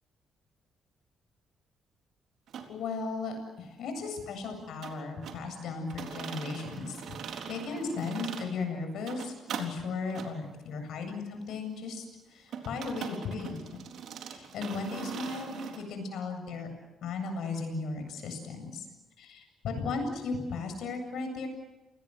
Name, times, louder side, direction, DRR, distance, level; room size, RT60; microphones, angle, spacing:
sound 1, 2.5-2.7 4.8-5.4 5.9-8.5 8.9-9.7 10.1-10.3 12.5-15.8, right 7 dB, 70° right, 3.9 m, -41 dB
voice 1, 2.7-7.2 7.5-12.0 12.3-13.6 14.3-16.7 17.0-18.9 19.2-21.5, left 4 dB, 75° left, 6 dB, 7.9 m, -36 dB
29.5 x 20.5 x 8.1 m, 1.1 s
cardioid pair, 90°, 0 cm